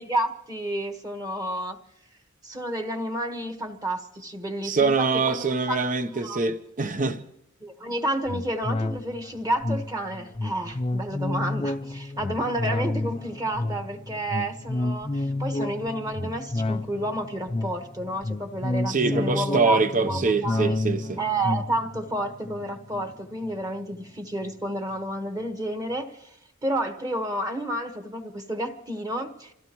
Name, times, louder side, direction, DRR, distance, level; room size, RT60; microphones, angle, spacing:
voice 1, 0.0-1.8 2.4-5.8 6.2-6.4 7.6-20.8 21.2-26.1 26.6-29.5, right 1 dB, 20° right, 1.4 m, -30 dB
voice 2, 4.6-7.2 18.9-21.2, right 4 dB, 40° right, 0.8 m, -24 dB
sound 1, 8.3-24.0 24.4-24.5, left 2 dB, 25° left, 0.5 m, -30 dB
27.0 x 16.0 x 3.1 m
head